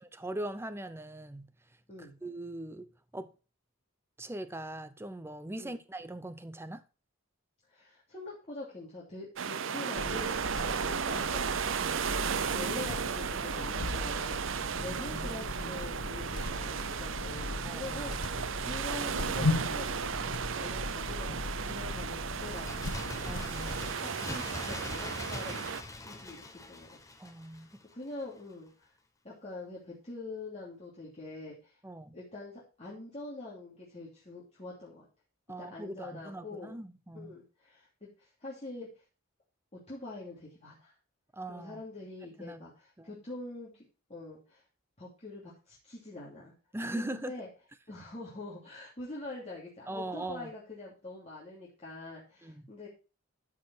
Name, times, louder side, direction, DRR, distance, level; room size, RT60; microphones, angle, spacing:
voice 1, 0.0-1.5 2.0-3.3 4.2-6.8 10.6-10.9 14.7-15.8 17.6-18.0 23.2-24.0 27.2-27.7 31.8-32.2 35.5-37.4 41.3-41.8 42.4-42.7 43.0-43.1 46.7-47.3 49.9-50.5 52.4-52.6, right 1 dB, 10° right, 0.6 m, -41 dB
voice 2, 7.7-11.5 12.1-20.2 20.5-21.4 21.6-25.7 26.0-26.9 27.6-28.9 29.2-31.8 32.1-35.0 35.6-36.7 37.1-38.9 39.7-40.9 41.5-44.6 45.0-46.5 46.9-47.5 47.9-52.9, left 2 dB, 30° left, 2.8 m, -45 dB
sound 1, 9.4-25.8, right 6 dB, 65° right, 0.6 m, -35 dB
sound 2, 10.0-23.9, left 2 dB, 75° left, 1.3 m, -38 dB
Bird, 22.4-27.9 28.2-28.3, left 2 dB, 15° left, 1.0 m, -43 dB
13.0 x 5.0 x 4.5 m
head